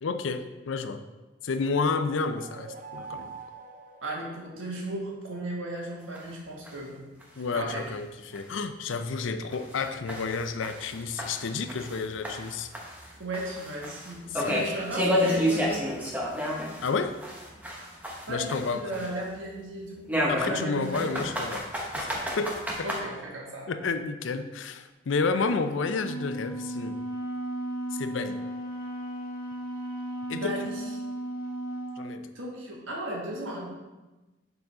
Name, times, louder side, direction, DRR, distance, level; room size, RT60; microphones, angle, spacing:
voice 1, 0.0-1.0 1.4-3.4 7.4-12.7 14.3-14.7 16.8-17.2 18.3-18.9 20.3-21.7 22.0-22.9 23.7-27.0 27.9-28.5 30.3-30.6 32.0-32.3, left 4 dB, 80° left, 10 dB, 0.5 m, -31 dB
sound 1, 2.0-4.9, right 5 dB, 40° right, 0.5 m, -45 dB
voice 2, 4.0-7.0 7.5-7.8 13.2-15.9 18.3-20.1 20.4-21.4 22.8-23.7 25.3-25.4 30.3-30.8 32.3-33.7, right 1 dB, 90° right, -2 dB, 1.6 m, -35 dB
sound 2, 6.2-6.3 6.7-6.8 7.2-7.3 7.8-7.9 8.4-8.5 8.9-9.0 9.5-12.0 12.2-16.9 17.2-19.3 20.1-23.0, equal, 10° right, 0.9 m, -30 dB
Wind instrument woodwind instrument, 25.8-32.0, right 1 dB, 50° left, 1.4 m, -35 dB
7.0 x 4.0 x 4.9 m, 1.1 s
head